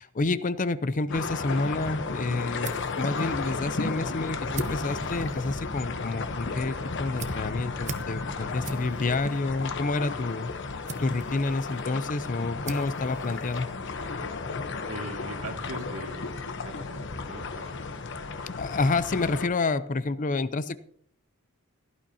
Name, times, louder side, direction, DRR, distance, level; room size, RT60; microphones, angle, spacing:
voice 1, 0.0-10.5 11.0-13.7 18.6-20.8, left 3 dB, 40° left, 14 dB, 0.6 m, -29 dB
sound 1, 1.1-19.5, left 4 dB, 60° left, 1.0 m, -34 dB
sound 2, 2.0-14.2, right 3 dB, 35° right, 1.0 m, -44 dB
voice 2, 14.9-17.7, right 1 dB, 80° right, 2 dB, 2.3 m, -41 dB
16.5 x 12.0 x 2.8 m, 0.62 s
head